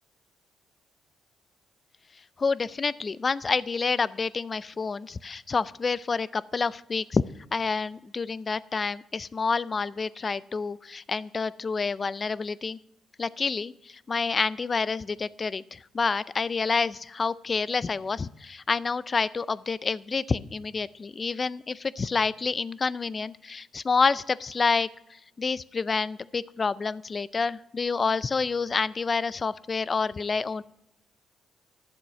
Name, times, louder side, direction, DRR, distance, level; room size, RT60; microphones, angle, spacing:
voice 1, 2.4-7.2 7.5-12.8 13.2-24.9 25.4-30.6, left 4 dB, 35° left, 19 dB, 0.4 m, -28 dB
11.0 x 7.4 x 5.6 m, 0.87 s
cardioid pair, 90°, 0 cm